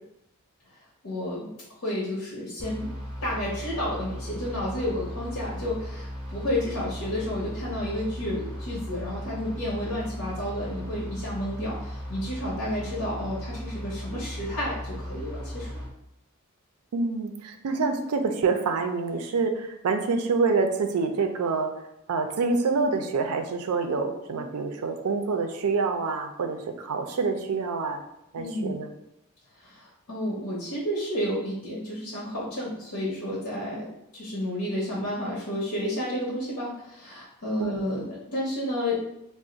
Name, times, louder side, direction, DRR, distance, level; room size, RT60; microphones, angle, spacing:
voice 1, 1.0-1.5 1.8-2.9 3.2-15.8 28.4-28.8 29.6-33.9 34.1-39.0, left 1 dB, 80° left, -7 dB, 0.8 m, -31 dB
sound 1, 2.6-15.9, equal, 5° right, 0.6 m, -36 dB
voice 2, 16.9-21.7 22.1-28.0 28.3-28.9 37.6-37.8, right 4 dB, 90° right, 6 dB, 0.4 m, -26 dB
2.4 x 2.0 x 3.9 m, 0.84 s
head